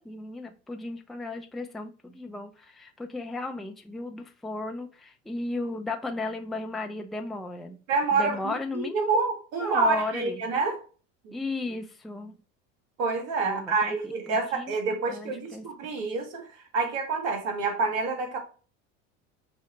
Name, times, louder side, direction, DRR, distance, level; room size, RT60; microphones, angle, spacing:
voice 1, 0.0-7.8 8.1-9.2 9.6-10.5 11.3-12.4 13.4-14.7 15.1-15.7, left 3 dB, ahead, 0.4 m, -35 dB
voice 2, 7.9-10.8 13.0-16.5 16.7-18.4, right 4 dB, 65° right, 1.6 m, -27 dB
5.2 x 2.1 x 4.1 m
hypercardioid pair, 85°, 36 cm